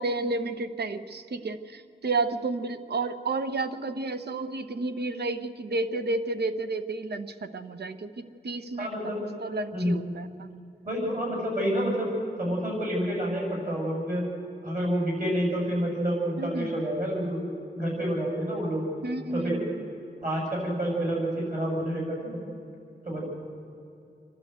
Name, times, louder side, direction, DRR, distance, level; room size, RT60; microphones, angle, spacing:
voice 1, 0.0-8.9 9.4-10.5 16.4-16.7 19.0-19.9, right 3 dB, 65° right, 10 dB, 1.0 m, -31 dB
voice 2, 8.8-9.2 9.7-9.9 10.8-12.1 12.4-14.2 14.6-17.5 17.7-18.8 19.3-19.6 20.2-22.4 23.0-23.2, equal, 45° right, -2 dB, 6.9 m, -28 dB
28.0 x 12.0 x 8.1 m, 2.7 s
wide cardioid pair, 120°, 18 cm